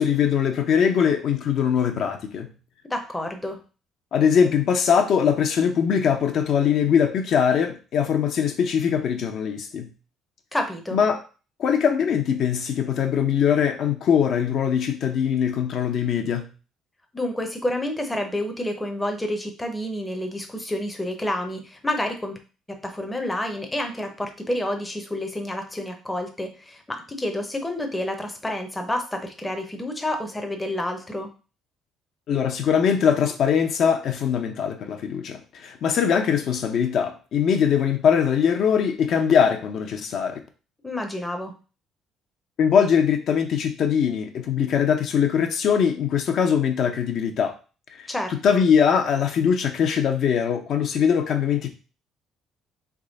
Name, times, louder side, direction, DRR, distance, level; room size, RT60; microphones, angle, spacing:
voice 1, 0.0-2.5 4.1-9.9 10.9-11.2 11.6-16.5 32.3-40.4 42.6-47.5 48.0-48.1 48.4-51.7, left 7 dB, 55° left, 5 dB, 0.6 m, -21 dB
voice 2, 2.8-3.6 10.5-11.0 17.1-22.4 22.7-31.3 40.8-41.5 48.1-48.6, left 1 dB, 10° left, 4 dB, 0.7 m, -29 dB
3.6 x 3.2 x 3.9 m, 0.34 s
cardioid pair, 140°, 0 cm